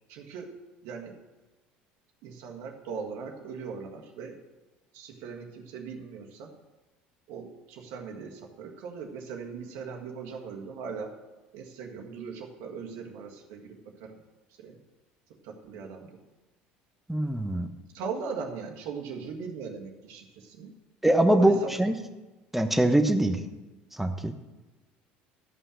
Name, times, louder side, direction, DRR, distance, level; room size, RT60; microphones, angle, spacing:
voice 1, 0.1-0.6 0.8-1.2 2.2-4.4 4.9-6.5 7.3-11.1 11.5-14.1 14.6-14.8 15.4-16.2 17.9-20.7 21.3-21.7, right 5 dB, 70° right, 1 dB, 1.7 m, -39 dB
voice 2, 17.1-17.7 21.0-21.9 22.5-23.4 24.0-24.3, right 1 dB, 5° right, 7 dB, 1.1 m, -23 dB
12.5 x 5.6 x 6.4 m, 1.1 s
hypercardioid pair, 75°, 5 cm